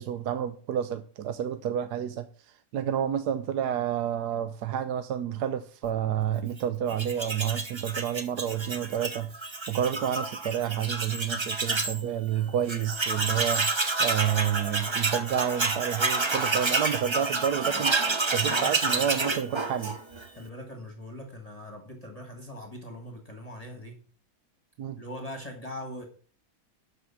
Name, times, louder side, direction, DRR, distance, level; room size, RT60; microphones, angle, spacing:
voice 1, 0.0-18.0 18.3-20.0 24.8-25.0, right 9 dB, 85° right, 11 dB, 1.3 m, -30 dB
Tools, 6.9-12.0 12.4-12.5 12.7-20.3, right 3 dB, 25° right, 0.7 m, -29 dB
voice 2, 18.3-19.2 20.3-24.0 25.0-26.1, left 1 dB, 25° left, 3 dB, 1.6 m, -41 dB
12.5 x 5.2 x 7.1 m, 0.42 s
omnidirectional pair, 1.7 m